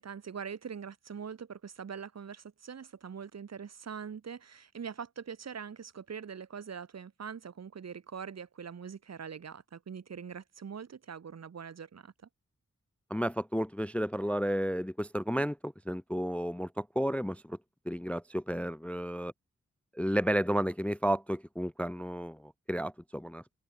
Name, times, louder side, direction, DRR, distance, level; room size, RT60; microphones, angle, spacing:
voice 1, 0.0-12.1, right 6 dB, 55° right, 1.0 m, -43 dB
voice 2, 13.1-17.6 17.9-19.3 19.9-23.6, equal, 5° left, 0.4 m, -32 dB
open air
wide cardioid pair, 85°, 31 cm